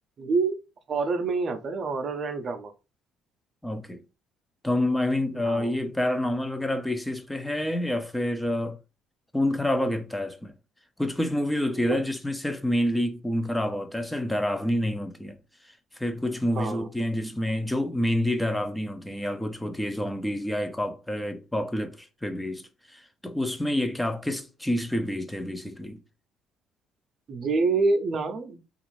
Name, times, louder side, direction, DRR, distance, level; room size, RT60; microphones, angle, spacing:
voice 1, 0.2-0.6 0.9-2.7 5.3-5.8 11.7-12.0 16.6-16.9 27.3-28.6, right 4 dB, 45° right, 0.6 m, -27 dB
voice 2, 3.6-4.0 4.6-8.8 9.3-10.5 11.0-15.4 16.0-22.6 22.9-26.0, left 1 dB, 5° left, 0.5 m, -28 dB
2.5 x 2.5 x 3.1 m
cardioid pair, 95°, 0 cm